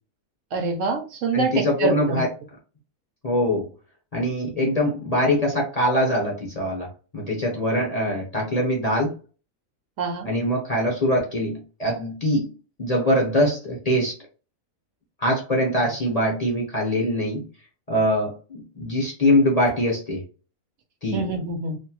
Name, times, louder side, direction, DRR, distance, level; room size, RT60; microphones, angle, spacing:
voice 1, 0.5-2.2 10.0-10.3 21.1-21.8, right 4 dB, 70° right, 5 dB, 0.9 m, -25 dB
voice 2, 1.3-2.3 3.2-3.7 4.1-6.9 7.1-9.1 10.2-12.5 12.8-14.1 15.2-17.5 17.9-20.2 21.0-21.3, equal, 35° left, -1 dB, 0.7 m, -23 dB
2.9 x 2.5 x 2.3 m, 0.35 s
omnidirectional pair, 1.4 m